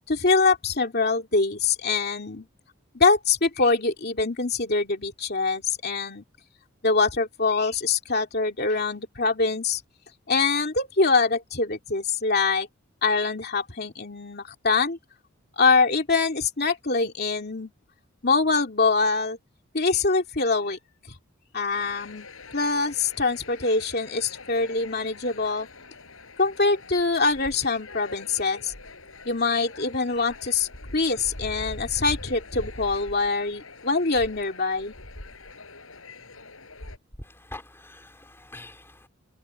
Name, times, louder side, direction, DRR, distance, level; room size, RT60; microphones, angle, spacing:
voice 1, 0.1-2.5 2.9-6.2 6.8-9.8 10.3-12.7 13.0-15.0 15.6-17.7 18.2-19.4 19.7-20.8 21.5-25.7 26.4-28.7 29.3-34.9, left 4 dB, 50° left, 2.8 m, -24 dB
sound 1, 21.7-37.0, left 2 dB, 85° left, 6.6 m, -43 dB
voice 2, 37.2-39.1, left 1 dB, 10° left, 3.7 m, -44 dB
head